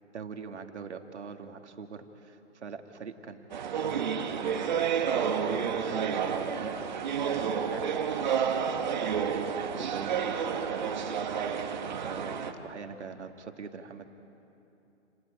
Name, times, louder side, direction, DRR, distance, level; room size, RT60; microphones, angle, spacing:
voice 1, 0.1-3.5 3.8-4.0 4.3-6.8 7.3-11.7 12.0-12.4 12.6-14.1, right 6 dB, 65° right, 5 dB, 2.1 m, -43 dB
sound 1, 3.5-12.5, right 7 dB, 40° right, 1.4 m, -30 dB
29.0 x 18.0 x 8.9 m, 2.9 s
hypercardioid pair, 165°, 36 cm